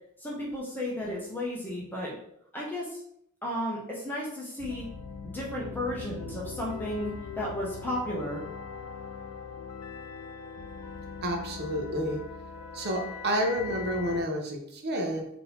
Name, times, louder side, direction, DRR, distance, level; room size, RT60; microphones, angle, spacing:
voice 1, 0.2-2.1 2.5-3.0 3.4-4.9 5.2-8.4, left 1 dB, 10° left, -4 dB, 0.8 m, -33 dB
sound 1, 4.6-14.2, left 6 dB, 80° left, 0.5 m, -41 dB
voice 2, 11.2-12.2 12.7-15.3, equal, 50° right, 2 dB, 0.8 m, -30 dB
3.8 x 2.9 x 3.9 m, 0.71 s
head